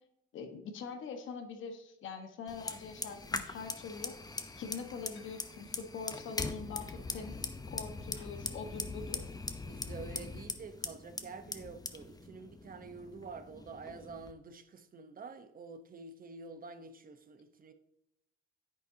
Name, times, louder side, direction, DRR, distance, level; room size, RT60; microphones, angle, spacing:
voice 1, 0.3-4.1 4.6-7.3 7.7-9.3, left 5 dB, 80° left, 1.5 m, -43 dB
Fire, 2.5-14.3, left 3 dB, 20° left, 0.9 m, -42 dB
sound 1, 3.3-9.5, left 3 dB, 60° left, 2.6 m, -64 dB
voice 2, 9.6-17.7, right 4 dB, 45° right, 1.0 m, -48 dB
10.0 x 8.3 x 2.9 m
cardioid pair, 90°, 20 cm